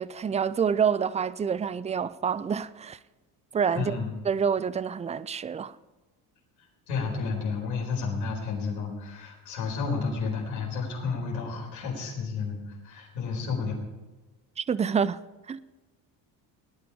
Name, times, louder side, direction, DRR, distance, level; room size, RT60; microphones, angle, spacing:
voice 1, 0.0-3.0 3.5-4.0 4.3-5.8 14.6-15.2 15.5-15.6, right 7 dB, 15° right, 0.4 m, -27 dB
voice 2, 3.7-4.1 6.9-13.8, left 4 dB, 90° left, 4.7 m, -31 dB
19.0 x 10.5 x 5.0 m
hypercardioid pair, 75°, 50 cm